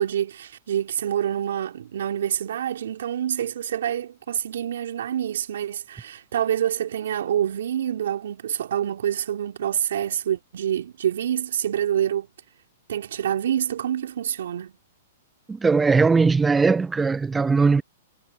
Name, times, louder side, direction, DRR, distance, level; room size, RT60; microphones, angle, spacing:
voice 1, 0.0-12.3 12.9-14.7, right 10 dB, 70° right, 2.8 m, -26 dB
voice 2, 15.5-17.8, right 4 dB, 10° right, 0.9 m, -19 dB
hypercardioid pair, 115°, 0 cm